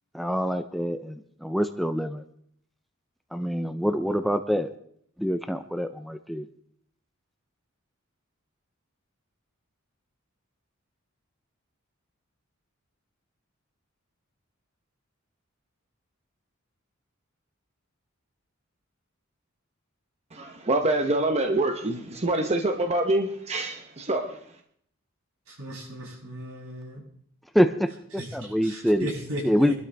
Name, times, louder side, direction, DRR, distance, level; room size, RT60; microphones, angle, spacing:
voice 1, 0.1-2.2 3.3-4.7 5.2-6.5 27.5-29.1 29.4-29.7, equal, ahead, 8 dB, 0.6 m, -25 dB
voice 2, 20.3-24.4, right 2 dB, 30° right, 4 dB, 1.0 m, -26 dB
voice 3, 25.5-27.0 28.2-29.7, right 1 dB, 80° right, -4 dB, 8.0 m, -36 dB
24.0 x 12.5 x 3.5 m, 0.66 s
head